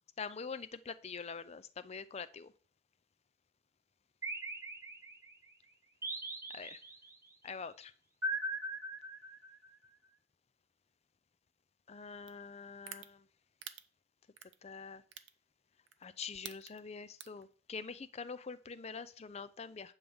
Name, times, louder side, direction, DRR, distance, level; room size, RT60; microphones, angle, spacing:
voice 1, 0.2-2.5 6.5-6.8 7.4-7.9 11.9-13.2 14.6-15.0 16.0-19.9, left 5 dB, 30° left, 13 dB, 0.4 m, -45 dB
sound 1, 4.2-5.3 6.0-7.1 8.2-9.7, right 1 dB, 15° right, 0.8 m, -40 dB
sound 2, 12.3-12.4 12.9-13.1 13.6-13.8 14.4-14.6 15.1-15.3 15.9-16.0 16.3-16.8 17.2-17.4, right 11 dB, 60° right, 0.6 m, -45 dB
9.1 x 3.6 x 7.0 m, 0.43 s
head